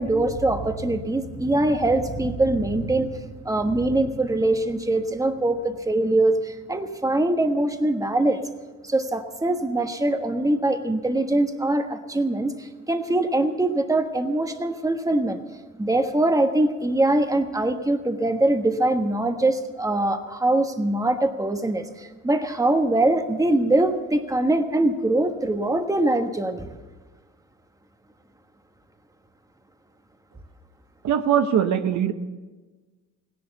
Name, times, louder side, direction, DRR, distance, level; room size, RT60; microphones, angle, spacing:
voice 1, 0.0-8.4 8.8-15.4 15.8-26.7, right 2 dB, 10° right, 7 dB, 1.3 m, -23 dB
voice 2, 31.0-32.1, right 9 dB, 70° right, 9 dB, 0.9 m, -21 dB
17.0 x 11.0 x 7.0 m, 1.3 s
cardioid pair, 90°, 30 cm